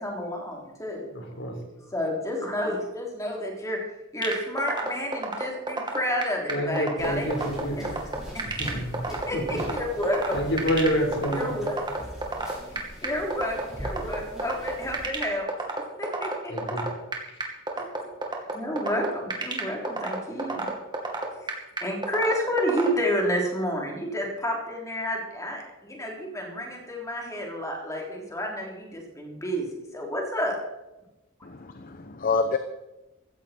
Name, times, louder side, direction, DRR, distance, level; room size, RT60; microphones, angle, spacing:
voice 1, 0.0-1.1 1.9-3.8 4.1-7.3 7.7-7.9 8.3-8.4 9.3-10.4 11.3-11.8 13.0-15.5 16.0-16.5 17.8-18.1 18.5-20.7 21.4-21.6 21.8-30.6, equal, 15° left, 0 dB, 3.5 m, -30 dB
voice 2, 1.1-1.6 6.5-7.8 8.4-9.0 9.3-9.6 10.3-11.5 16.5-16.9, equal, 60° left, 2 dB, 4.2 m, -28 dB
sound 1, 4.2-22.9, right 3 dB, 20° right, 2.5 m, -29 dB
sound 2, 7.0-15.1, equal, 5° right, 7.0 m, -41 dB
voice 3, 31.4-32.6, left 4 dB, 45° left, 8 dB, 0.9 m, -27 dB
16.0 x 15.0 x 4.5 m, 0.98 s
head